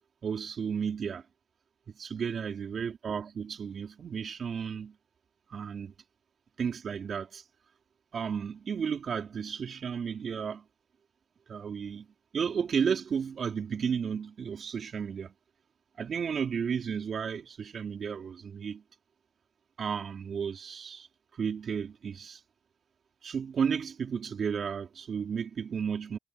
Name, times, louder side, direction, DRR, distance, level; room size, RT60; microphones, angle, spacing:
voice 1, 0.2-1.2 2.0-4.9 5.5-5.9 6.6-7.4 8.1-10.6 11.5-12.1 12.3-15.3 16.0-18.8 19.8-21.1 21.4-22.4 23.2-26.2, right 7 dB, 50° right, 3.6 m, -33 dB
cardioid pair, 90°, 0 cm